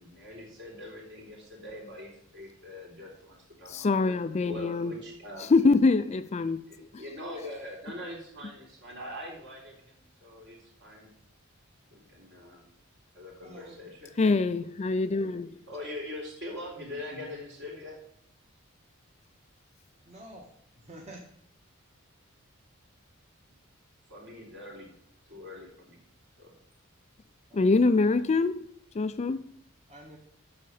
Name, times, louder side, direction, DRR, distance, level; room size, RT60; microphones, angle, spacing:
voice 1, 0.0-3.9 4.5-5.4 6.9-11.1 11.9-12.7 13.1-14.1 15.7-18.0 24.1-24.9 25.3-26.0 26.4-26.5, left 1 dB, 60° right, 3.8 m, -42 dB
voice 2, 3.7-4.9 5.4-7.0 14.2-15.6 27.5-29.5, left 3 dB, 30° left, 0.4 m, -25 dB
voice 3, 13.4-14.1 20.1-20.5 20.7-21.2 27.5-27.8 29.9-30.2, right 1 dB, 30° right, 1.4 m, -48 dB
8.5 x 6.5 x 6.5 m
head